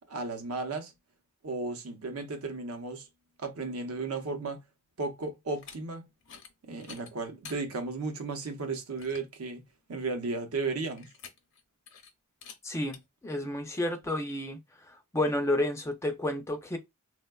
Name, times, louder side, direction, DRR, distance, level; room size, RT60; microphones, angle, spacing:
voice 1, 0.1-0.9 1.4-3.1 3.4-4.6 5.0-6.1 6.7-9.6 9.9-11.1, right 3 dB, 75° right, 0.6 m, -34 dB
sound 1, 5.5-5.8 6.2-6.5 6.8-7.6 8.2-8.3 8.6-8.7 9.0-9.3 11.0-11.6 11.9-12.1 12.4-12.6 12.9-13.0, left 6 dB, 55° left, 0.6 m, -48 dB
voice 2, 12.6-14.6 14.9-16.8, left 1 dB, 10° left, 0.3 m, -31 dB
3.4 x 2.1 x 2.2 m
head